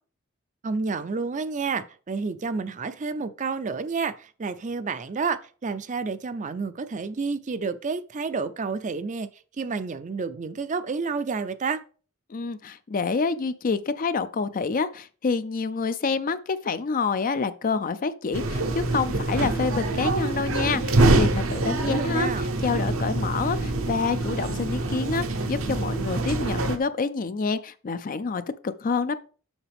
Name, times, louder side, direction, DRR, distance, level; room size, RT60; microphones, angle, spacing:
voice 1, 0.6-9.3 9.6-11.8 21.8-22.5, right 4 dB, 35° right, 0.5 m, -30 dB
voice 2, 12.3-29.2, left 4 dB, 40° left, 0.4 m, -27 dB
sound 1, 18.3-26.8, right 2 dB, 75° right, 0.9 m, -25 dB
7.2 x 5.8 x 3.5 m
head